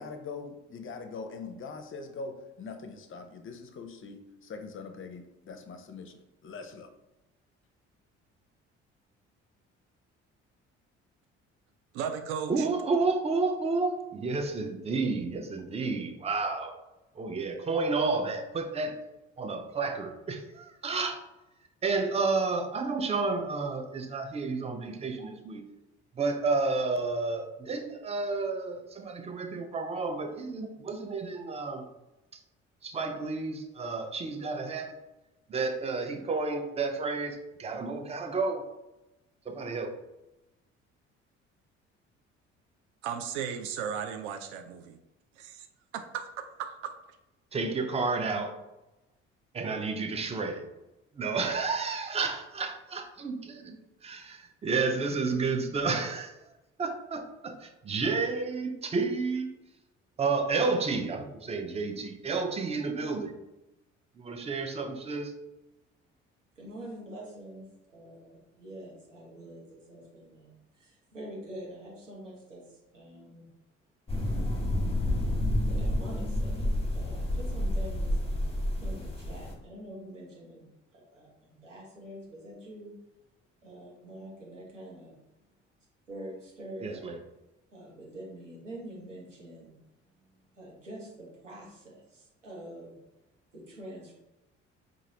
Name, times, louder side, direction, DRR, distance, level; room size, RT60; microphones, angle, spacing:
voice 1, 0.0-6.9, left 4 dB, 35° left, 6 dB, 0.6 m, -42 dB
voice 2, 11.9-12.7 43.0-45.0 45.4-45.7 45.9-46.9, right 7 dB, 65° right, 7 dB, 0.5 m, -36 dB
voice 3, 12.5-16.7 17.2-19.0 19.4-21.2 21.8-25.6 26.2-31.8 32.8-35.0 35.5-38.6 39.5-39.9 47.5-48.5 49.5-50.6 51.2-53.8 54.0-56.4 56.8-59.5 60.2-63.3 64.2-65.3 86.8-87.2, right 4 dB, 15° right, 6 dB, 0.6 m, -31 dB
voice 4, 66.6-73.5 75.7-78.4 78.8-80.7 80.9-82.9 83.6-85.2 86.1-87.1 87.7-89.8 90.1-93.0 93.5-94.1, right 1 dB, 85° right, -3 dB, 1.0 m, -46 dB
sound 1, 74.1-79.5, left 1 dB, 15° left, 1.0 m, -29 dB
4.9 x 2.5 x 2.8 m, 0.95 s
figure-of-eight pair, 50°, 36 cm